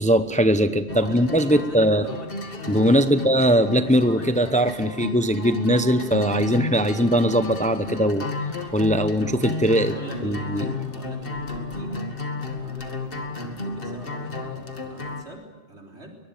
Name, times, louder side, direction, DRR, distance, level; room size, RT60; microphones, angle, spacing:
voice 1, 0.0-2.0 2.7-8.3 8.7-9.9 10.2-10.7, equal, 10° left, 11 dB, 0.8 m, -20 dB
sound 1, 0.9-15.2, left 2 dB, 55° left, 2.3 m, -32 dB
voice 2, 1.6-2.2 3.0-3.2 9.9-12.1 12.5-16.2, right 1 dB, 80° right, 1 dB, 4.3 m, -43 dB
23.0 x 20.5 x 9.1 m, 1.2 s
omnidirectional pair, 1.1 m